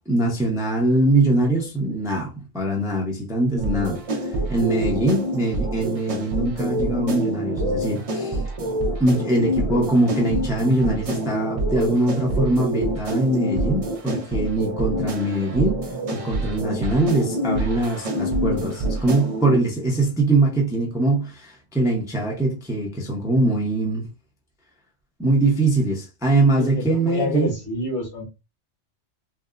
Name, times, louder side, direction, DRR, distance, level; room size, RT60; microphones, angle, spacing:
voice 1, 0.1-8.4 9.0-15.8 16.1-24.1 25.2-27.5, right 2 dB, 5° right, 0.5 m, -22 dB
sound 1, 3.6-19.6, right 1 dB, 55° right, 0.3 m, -26 dB
voice 2, 26.8-28.2, left 1 dB, 65° left, 1.4 m, -27 dB
3.4 x 2.1 x 2.4 m
omnidirectional pair, 1.2 m